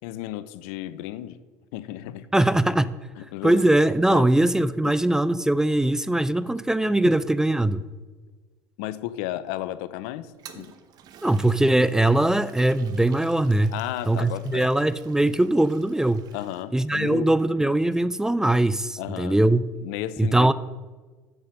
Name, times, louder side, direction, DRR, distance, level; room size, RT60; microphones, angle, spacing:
voice 1, 0.0-1.4 1.7-2.4 3.3-3.7 4.1-4.3 4.8-4.9 8.8-10.7 13.7-14.7 16.3-17.3 19.0-19.4 19.8-20.5, left 14 dB, 75° left, 15 dB, 0.5 m, -33 dB
voice 2, 2.3-2.9 3.4-7.9 11.2-13.8 14.1-16.2 16.7-19.7 20.2-20.5, right 1 dB, 5° right, 16 dB, 0.4 m, -21 dB
Toilet flush, 10.2-16.6, right 8 dB, 55° right, 0.9 m, -50 dB
7.9 x 7.5 x 5.5 m, 1.3 s
supercardioid pair, 90°, 8 cm